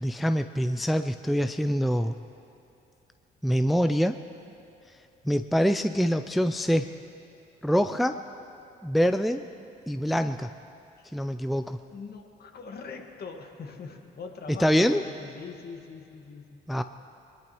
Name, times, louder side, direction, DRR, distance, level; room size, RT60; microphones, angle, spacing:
voice 1, 0.0-2.2 3.4-4.2 5.3-6.9 7.6-8.2 8.8-9.4 9.9-10.5 11.1-11.8 14.6-15.0 16.7-16.8, equal, ahead, 9 dB, 0.5 m, -25 dB
voice 2, 11.9-16.6, left 5 dB, 50° left, 3 dB, 1.8 m, -42 dB
21.0 x 20.5 x 3.1 m, 2.6 s
cardioid pair, 75°, 20 cm